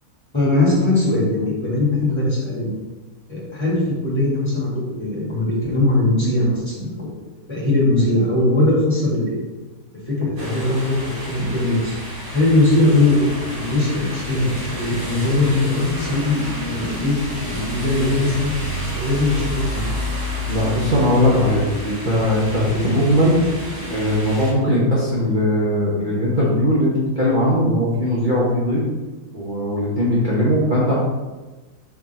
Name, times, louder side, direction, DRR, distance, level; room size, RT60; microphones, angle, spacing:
voice 1, 0.3-2.7 3.3-7.2 7.5-9.4 10.1-11.9 12.3-13.2 13.5-16.3 16.6-17.2 17.5-18.5 18.9-19.9, left 2 dB, 15° left, -6 dB, 2.4 m, -20 dB
sound 1, 10.4-24.5, equal, 70° right, 2.9 m, -29 dB
voice 2, 20.5-23.5 23.8-28.8 29.3-30.9, equal, 35° right, -7 dB, 1.3 m, -19 dB
4.8 x 4.7 x 5.8 m, 1.2 s
omnidirectional pair, 1.6 m